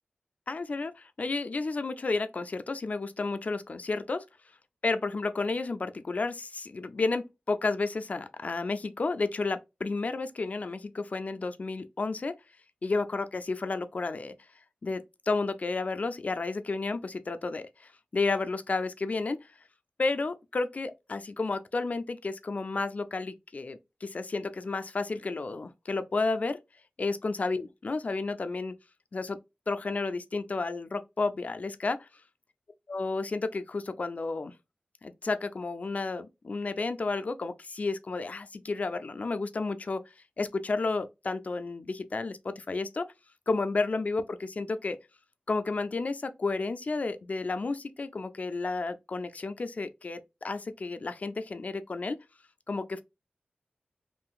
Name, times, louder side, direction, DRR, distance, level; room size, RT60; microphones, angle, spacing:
voice 1, 0.5-4.2 4.8-12.3 12.8-14.3 14.8-19.5 20.0-26.6 27.0-28.7 29.1-29.4 29.7-32.1 32.9-34.5 35.0-40.0 40.4-43.1 43.5-45.0 45.5-52.2 52.7-53.0, left 3 dB, 45° left, 0.4 m, -32 dB
3.7 x 2.5 x 2.3 m
wide cardioid pair, 90°, 3 cm